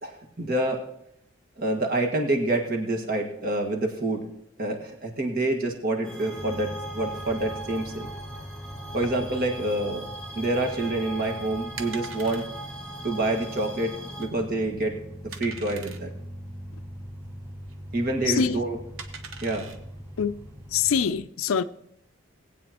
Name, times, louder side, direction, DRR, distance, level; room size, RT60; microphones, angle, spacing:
voice 1, 0.0-0.8 1.6-4.3 4.6-8.1 8.9-10.1 10.3-12.5 13.0-15.0 15.2-16.1 17.9-18.8 19.4-19.7, right 2 dB, 45° right, 1.7 m, -27 dB
sound 1, 6.0-14.3, right 1 dB, 5° left, 1.9 m, -40 dB
sound 2, 6.4-21.1, equal, 15° right, 2.7 m, -42 dB
sound 3, 10.5-21.1, right 5 dB, 75° right, 1.0 m, -45 dB
voice 2, 18.2-18.6 20.2-20.4 20.7-21.6, left 6 dB, 80° left, 0.5 m, -24 dB
19.0 x 8.5 x 3.0 m
head